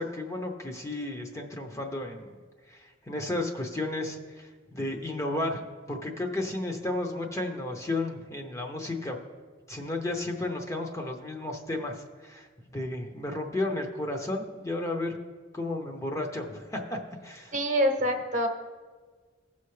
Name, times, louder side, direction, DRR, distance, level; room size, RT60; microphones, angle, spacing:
voice 1, 0.0-2.4 2.7-5.6 5.9-9.2 9.7-11.9 12.2-12.5 12.7-15.2 15.5-17.5, left 2 dB, 15° left, 3 dB, 0.7 m, -33 dB
voice 2, 17.5-18.5, equal, 40° right, 4 dB, 1.0 m, -25 dB
16.0 x 5.7 x 3.2 m, 1.5 s
head